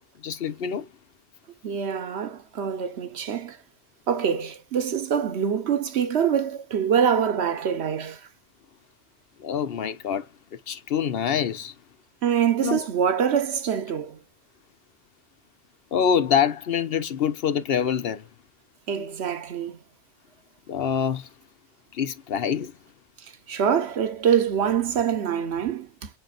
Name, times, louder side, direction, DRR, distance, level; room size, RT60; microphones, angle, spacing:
voice 1, 0.2-0.9 9.4-10.3 10.7-11.7 12.6-12.8 15.9-18.2 20.7-21.3 21.9-22.7, left 8 dB, 65° left, 0.9 m, -25 dB
voice 2, 1.6-3.6 4.1-8.2 12.2-14.2 18.9-19.8 23.5-26.1, right 8 dB, 75° right, 1.2 m, -25 dB
5.5 x 4.0 x 2.4 m
omnidirectional pair, 1.1 m